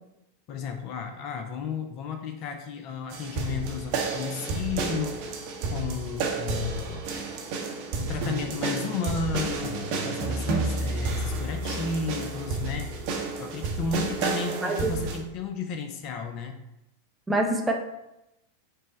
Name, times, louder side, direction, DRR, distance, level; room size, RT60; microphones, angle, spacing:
voice 1, 0.5-7.1 8.0-13.1 13.4-16.6, left 5 dB, 40° left, 6 dB, 0.4 m, -33 dB
sound 1, 3.1-15.2, right 3 dB, 45° right, 0.7 m, -30 dB
voice 2, 17.3-17.7, right 2 dB, 10° right, 1 dB, 0.6 m, -25 dB
5.3 x 2.1 x 3.8 m, 0.88 s
figure-of-eight pair, 90°, 0 cm